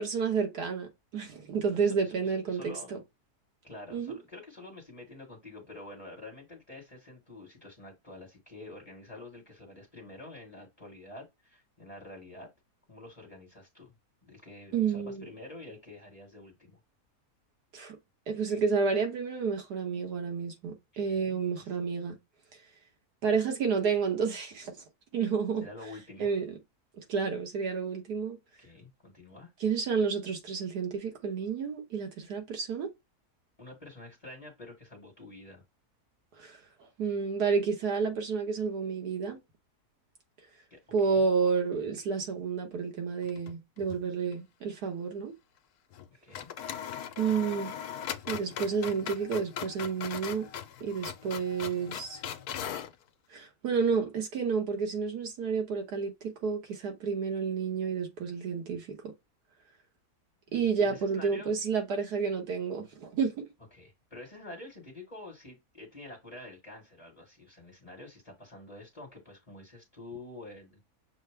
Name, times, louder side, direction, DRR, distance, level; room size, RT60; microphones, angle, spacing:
voice 1, 0.0-3.0 3.9-4.1 14.7-15.2 17.7-18.0 18.3-22.2 23.2-24.8 25.1-25.7 26.2-26.5 27.0-28.4 29.6-32.9 36.4-36.6 37.0-39.4 40.9-45.3 47.2-47.8 48.3-50.5 50.8-52.2 53.3-59.1 60.5-63.5, right 5 dB, 90° right, 1.8 m, -30 dB
voice 2, 1.7-3.0 3.6-12.5 12.9-13.9 14.2-16.8 20.9-21.8 25.6-26.3 28.6-29.5 33.6-35.6 40.7-41.3 46.1-46.5 60.6-61.5 63.7-70.8, left 2 dB, 25° left, 1.3 m, -48 dB
sound 1, 43.2-44.1 44.3-44.4 45.9-46.1 46.3-53.0, left 9 dB, 80° left, 1.1 m, -39 dB
6.3 x 2.2 x 3.3 m
omnidirectional pair, 1.7 m